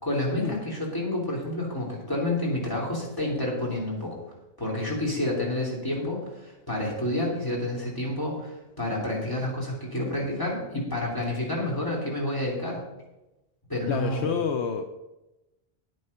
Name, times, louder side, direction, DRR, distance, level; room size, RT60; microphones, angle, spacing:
voice 1, 0.0-4.2 4.6-12.8 13.7-14.3, left 1 dB, 20° left, -4 dB, 3.3 m, -29 dB
voice 2, 13.9-14.8, left 6 dB, 70° left, 6 dB, 1.0 m, -28 dB
9.4 x 9.4 x 5.5 m, 1.0 s
omnidirectional pair, 1.2 m